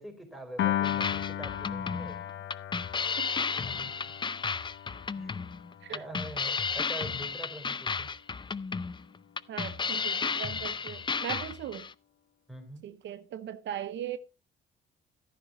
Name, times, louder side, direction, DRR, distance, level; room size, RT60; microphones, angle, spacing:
voice 1, 0.0-2.2 3.5-4.1 5.1-5.4 5.9-8.2 12.5-12.9, right 1 dB, ahead, 3.9 m, -44 dB
Piano, 0.6-7.0, left 11 dB, 70° left, 0.7 m, -36 dB
sound 1, 0.8-11.9, left 5 dB, 25° left, 0.5 m, -33 dB
voice 2, 9.5-11.9 12.8-14.2, right 10 dB, 65° right, 0.7 m, -39 dB
13.0 x 11.0 x 3.0 m
cardioid pair, 90°, 20 cm